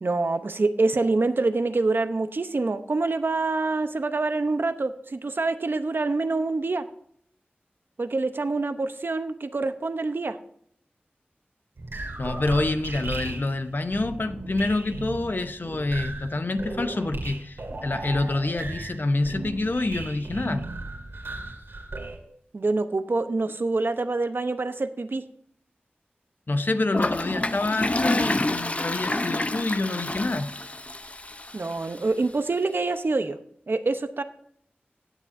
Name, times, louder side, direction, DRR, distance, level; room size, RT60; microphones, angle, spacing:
voice 1, 0.0-6.8 8.0-10.4 22.5-25.2 31.5-33.4 33.7-34.2, right 3 dB, 65° right, 0.8 m, -26 dB
sound 1, 11.8-22.2, right 2 dB, 85° right, 2.2 m, -36 dB
voice 2, 12.2-20.7 26.5-30.5, left 2 dB, 60° left, 0.9 m, -27 dB
Toilet flush, 26.9-32.0, left 2 dB, 35° left, 0.7 m, -28 dB
19.0 x 7.3 x 2.6 m
cardioid pair, 45°, 4 cm